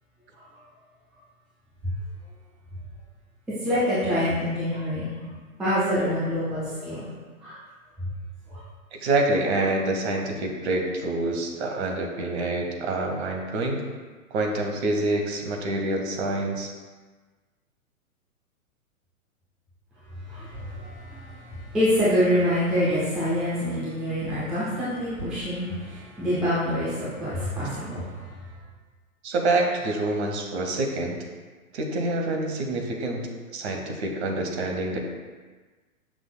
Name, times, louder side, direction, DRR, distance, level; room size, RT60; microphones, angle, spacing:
voice 1, 3.6-5.1 5.6-7.1 7.4-7.6 8.5-8.6 20.2-28.4, equal, ahead, -11 dB, 0.3 m, -26 dB
voice 2, 9.0-13.8 14.3-16.7 29.2-31.2 31.7-33.2 33.5-35.0, right 2 dB, 50° right, 2 dB, 1.1 m, -26 dB
7.1 x 6.0 x 2.2 m, 1.4 s
figure-of-eight pair, 110°, 42 cm